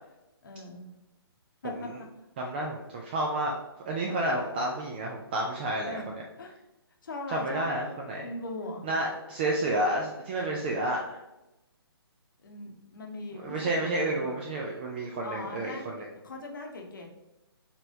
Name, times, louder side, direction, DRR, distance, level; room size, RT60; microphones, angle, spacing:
voice 1, 0.4-0.9 1.6-1.9 2.6-2.7 4.1-4.8 5.8-6.0 6.4-6.6 7.0-7.8 8.2-8.9 12.4-14.5 15.2-15.8 16.2-17.1, left 2 dB, 50° left, 2 dB, 0.9 m, -40 dB
voice 2, 2.4-3.6 3.8-6.0 7.3-8.3 8.8-11.2 13.3-16.1, right 1 dB, 25° right, 0 dB, 0.4 m, -30 dB
5.2 x 3.2 x 2.7 m, 0.96 s
figure-of-eight pair, 135°, 13 cm